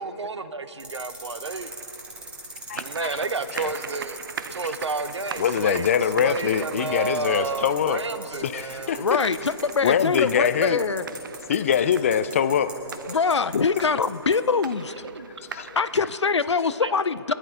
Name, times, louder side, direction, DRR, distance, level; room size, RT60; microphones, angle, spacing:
voice 1, 0.0-1.7 2.7-5.9 6.1-9.0 13.0-13.2 13.9-14.0 14.9-15.3 16.8-16.9, right 3 dB, 70° right, 12 dB, 0.9 m, -31 dB
sound 1, 0.8-14.1 14.3-14.4, right 2 dB, 5° right, 1.5 m, -40 dB
sound 2, 1.4-16.2, right 6 dB, 45° right, 0.6 m, -41 dB
voice 2, 2.7-3.2 3.5-3.7 4.6-4.7 5.4-8.0 8.4-9.3 9.8-10.8 11.5-12.7 15.5-15.8, left 8 dB, 30° left, 13 dB, 0.5 m, -24 dB
voice 3, 9.0-11.0 13.1-15.1 15.8-17.3, left 5 dB, 75° left, 15 dB, 0.6 m, -24 dB
23.0 x 10.5 x 3.9 m, 2.9 s
figure-of-eight pair, 145°, 15 cm